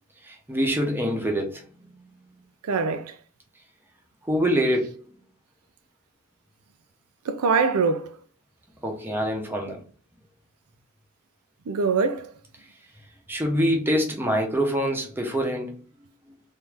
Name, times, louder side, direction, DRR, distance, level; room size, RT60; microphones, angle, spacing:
voice 1, 0.2-1.6 4.2-5.1 8.8-9.8 13.3-15.8, equal, 10° right, 0.8 m, -25 dB
voice 2, 2.6-3.1 7.3-8.2 11.7-12.3, right 5 dB, 90° right, 0.5 m, -23 dB
3.6 x 2.7 x 3.3 m
head